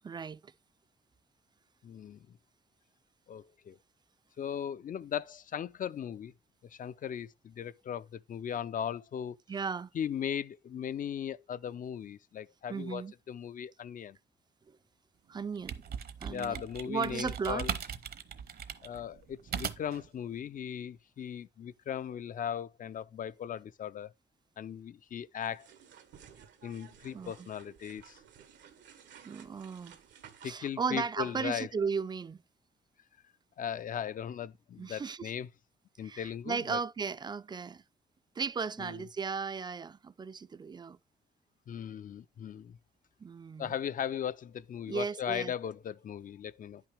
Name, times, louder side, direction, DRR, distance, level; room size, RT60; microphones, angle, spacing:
voice 1, 0.0-0.5 9.5-9.9 12.7-13.1 14.7-14.8 15.3-15.8 16.2-17.7 27.1-27.5 29.2-30.0 30.4-32.4 34.8-35.3 36.0-37.8 38.4-41.0 43.2-43.7 44.9-45.5, right 5 dB, 25° right, 0.3 m, -36 dB
voice 2, 1.8-2.4 3.3-3.8 4.4-6.3 6.7-9.4 9.9-14.2 16.3-17.7 18.8-24.1 24.6-25.7 26.6-28.2 30.4-31.7 33.6-35.5 36.0-36.8 38.8-39.0 41.7-42.8 43.6-46.8, left 9 dB, 50° left, 0.4 m, -38 dB
sound 1, 15.4-20.1, right 7 dB, 60° right, 0.8 m, -39 dB
sound 2, 25.4-30.5, right 8 dB, 90° right, 1.2 m, -55 dB
10.0 x 5.9 x 3.3 m
cardioid pair, 90°, 18 cm